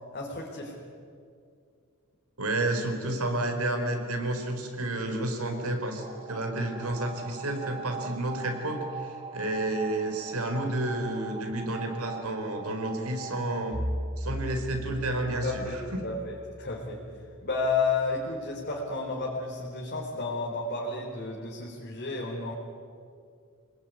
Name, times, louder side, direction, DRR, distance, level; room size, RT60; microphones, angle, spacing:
voice 1, 0.1-0.7 15.4-15.8 16.0-17.0 17.4-22.5, left 3 dB, 45° left, -3 dB, 3.9 m, -31 dB
voice 2, 2.4-13.8 14.2-16.1, right 1 dB, 85° right, 4 dB, 4.4 m, -31 dB
sound 1, 6.0-13.8, right 5 dB, 25° right, 2.0 m, -42 dB
Bowed string instrument, 13.7-17.9, equal, 45° right, 3.3 m, -37 dB
28.0 x 20.0 x 9.5 m, 2.3 s
head